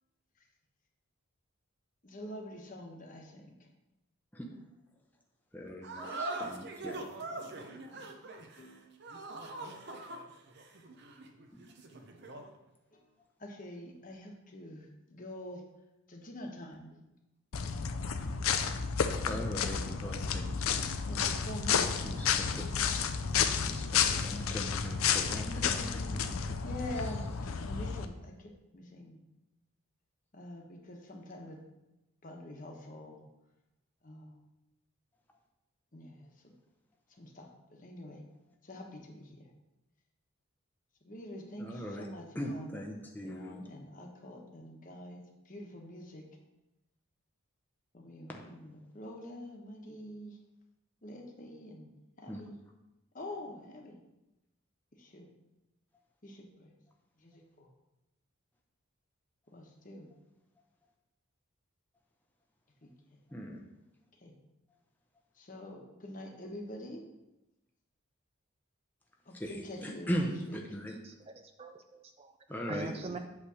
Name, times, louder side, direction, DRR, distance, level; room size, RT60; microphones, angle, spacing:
voice 1, 2.0-3.6 7.9-8.1 8.6-8.9 12.9-13.1 13.4-15.6 16.1-17.0 17.6-17.9 19.6-19.9 21.0-22.1 22.7-23.1 25.3-29.2 30.3-31.6 32.2-33.2 34.0-34.5 35.9-36.5 37.2-38.2 38.6-39.5 41.0-42.8 43.2-46.2 47.9-50.4 51.0-51.9 52.2-52.6 53.1-54.0 55.0-55.3 56.2-56.7 57.2-57.7 59.5-60.1 62.8-63.2 64.2-64.4 65.4-67.0 69.2-70.6, left 1 dB, 40° left, 1 dB, 1.1 m, -46 dB
voice 2, 5.5-7.0 11.5-11.6 19.2-20.8 22.0-22.8 23.7-25.8 41.6-42.1 42.4-43.6 48.3-48.4 52.3-52.4 63.3-63.6 69.4-71.0 72.5-73.2, equal, 10° left, 0 dB, 0.6 m, -39 dB
sound 1, 5.8-12.6, right 2 dB, 50° right, 0.7 m, -42 dB
sound 2, 17.5-28.0, left 6 dB, 75° left, 0.5 m, -31 dB
voice 3, 71.0-72.3 72.7-73.2, right 3 dB, 25° right, 7 dB, 0.3 m, -43 dB
8.3 x 3.3 x 6.2 m, 0.96 s
head